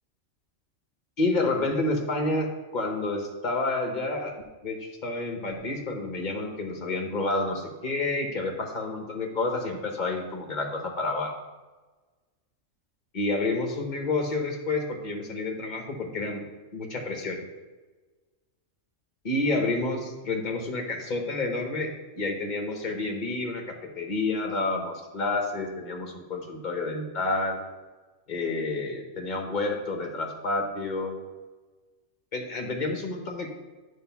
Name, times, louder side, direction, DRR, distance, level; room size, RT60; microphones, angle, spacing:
voice 1, 1.2-11.3 13.1-16.4 16.7-17.4 19.2-27.6 28.3-31.2 32.3-33.5, left 2 dB, 40° left, 2 dB, 1.1 m, -29 dB
9.2 x 3.3 x 5.7 m, 1.2 s
omnidirectional pair, 1.3 m